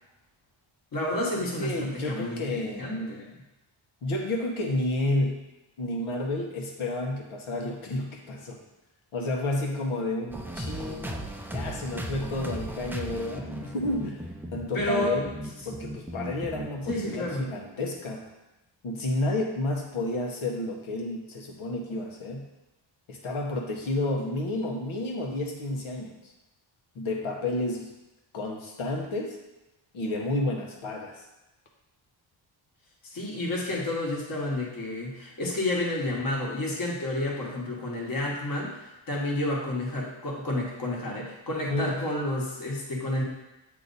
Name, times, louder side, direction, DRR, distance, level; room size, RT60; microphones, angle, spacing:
voice 1, 0.9-2.4 2.8-3.3 14.7-15.1 16.9-17.5 33.1-43.2, left 1 dB, 45° left, -2 dB, 1.4 m, -30 dB
voice 2, 1.6-3.2 4.0-5.5 5.8-8.6 9.1-11.2 11.5-14.2 14.5-15.3 15.6-18.3 18.8-22.5 23.1-26.3 26.9-27.9 28.3-29.4 29.9-31.3 41.7-42.0, left 2 dB, 85° left, 1 dB, 1.2 m, -31 dB
sound 1, 10.3-17.8, right 1 dB, 5° right, 0.3 m, -37 dB
8.2 x 2.9 x 4.0 m, 1.0 s
wide cardioid pair, 115°, 48 cm